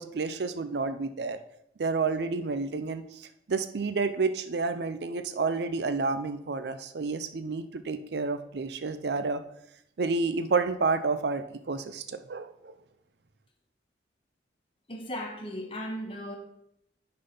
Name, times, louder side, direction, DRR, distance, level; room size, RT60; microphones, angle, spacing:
voice 1, 0.0-1.4 1.8-9.4 10.0-12.7, right 4 dB, 60° right, 10 dB, 0.5 m, -30 dB
voice 2, 14.9-16.4, equal, 30° left, 2 dB, 1.3 m, -36 dB
10.0 x 4.0 x 5.4 m, 0.76 s
head